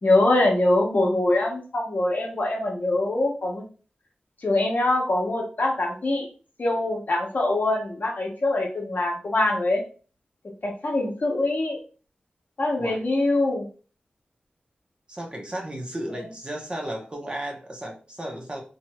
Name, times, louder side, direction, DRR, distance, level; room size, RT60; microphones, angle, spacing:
voice 1, 0.0-3.6 4.4-6.3 6.6-9.8 10.6-11.8 12.6-13.6 16.1-16.2, left 2 dB, 60° left, 0 dB, 0.9 m, -23 dB
voice 2, 15.1-18.6, right 1 dB, 30° right, 0 dB, 0.9 m, -34 dB
2.9 x 2.7 x 2.3 m, 0.38 s
cardioid pair, 40°, 3 cm